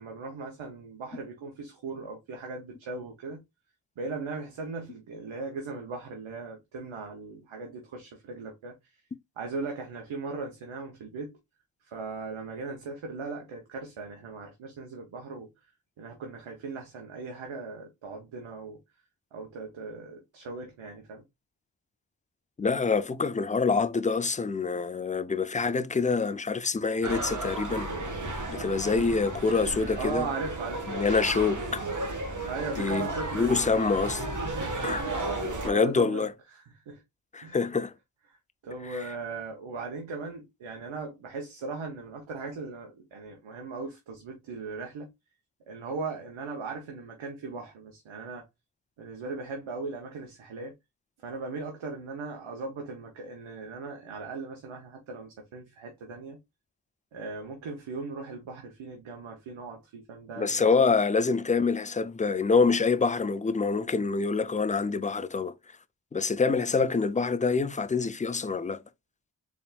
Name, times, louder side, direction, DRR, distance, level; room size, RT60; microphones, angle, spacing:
voice 1, 0.0-3.4 4.0-8.7 9.4-11.3 11.8-15.5 16.0-18.8 19.3-21.2 30.0-30.9 32.5-33.8 35.4-37.0 37.4-37.6 38.3-38.4 38.6-45.1 45.7-48.5 49.0-50.7 51.2-56.4 57.1-60.7, right 4 dB, 80° right, 1.0 m, -38 dB
voice 2, 22.6-27.9 28.5-30.3 30.9-31.8 32.8-33.1 33.3-34.2 34.8-35.1 35.6-36.3 37.3-37.9 38.9-39.0 60.4-65.5 66.1-68.8, left 4 dB, 20° left, 0.4 m, -26 dB
sound 1, 27.0-35.7, right 2 dB, 40° right, 1.4 m, -33 dB
4.1 x 3.6 x 2.3 m
cardioid pair, 55°, 47 cm